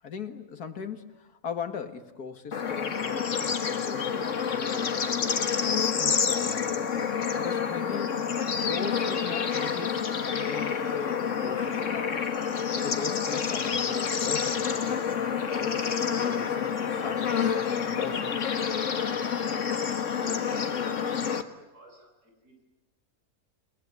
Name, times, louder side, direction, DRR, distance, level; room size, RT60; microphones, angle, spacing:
voice 1, 0.0-5.6 6.0-6.9 7.4-10.1 10.3-12.2 12.7-15.1 15.6-18.9, left 6 dB, 85° left, 9 dB, 2.4 m, -39 dB
Bird / Insect / Frog, 2.5-21.4, left 7 dB, 55° left, 1.8 m, -28 dB
voice 2, 19.9-22.6, left 2 dB, 85° right, 1 dB, 8.7 m, -48 dB
30.0 x 19.5 x 9.5 m, 1.0 s
omnidirectional pair, 1.6 m